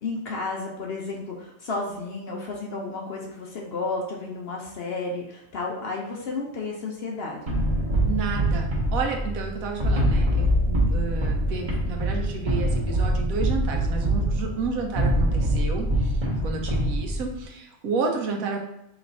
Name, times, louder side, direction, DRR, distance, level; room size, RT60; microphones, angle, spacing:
voice 1, 0.0-7.5 16.3-16.6, left 3 dB, 60° left, -1 dB, 0.7 m, -32 dB
sound 1, 7.5-17.4, right 1 dB, 35° right, 1.1 m, -24 dB
voice 2, 8.0-18.6, right 4 dB, 80° right, 2 dB, 1.1 m, -31 dB
3.1 x 3.1 x 4.0 m, 0.84 s
omnidirectional pair, 1.5 m